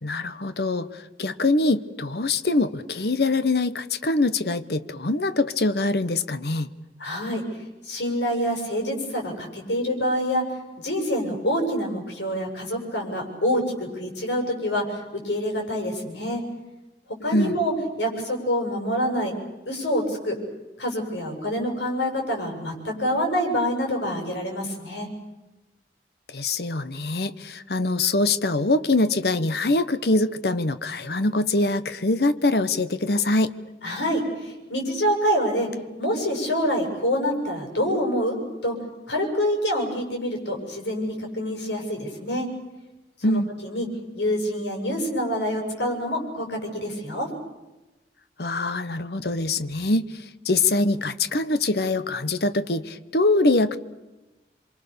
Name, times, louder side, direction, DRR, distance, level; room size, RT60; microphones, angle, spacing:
voice 1, 0.0-6.7 17.3-17.6 26.3-33.5 43.2-43.5 48.4-53.8, left 2 dB, 65° left, 13 dB, 1.1 m, -23 dB
voice 2, 7.0-7.4 7.8-10.4 10.8-16.4 17.2-17.7 18.0-19.3 19.7-20.4 20.8-25.1 33.8-35.7 36.0-38.8 39.1-42.5 43.2-43.9 44.1-47.3, equal, 90° left, 2 dB, 7.4 m, -26 dB
28.0 x 25.5 x 6.9 m, 1.1 s
head